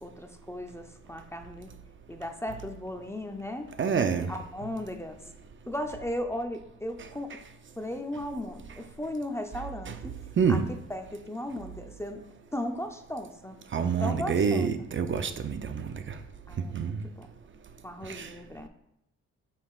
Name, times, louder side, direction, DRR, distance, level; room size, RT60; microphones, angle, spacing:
voice 1, 0.0-1.7 2.1-3.7 4.3-5.2 5.7-7.4 7.8-10.2 10.5-12.2 12.5-13.6 14.0-14.7 16.5-17.3 17.8-18.7, left 1 dB, 10° left, 6 dB, 0.6 m, -36 dB
voice 2, 3.8-4.3 9.9-10.0 10.4-10.6 13.7-16.1 16.7-17.0 18.1-18.3, right 6 dB, 40° right, 9 dB, 0.6 m, -27 dB
7.8 x 5.7 x 2.4 m, 0.83 s
cardioid pair, 90°, 30 cm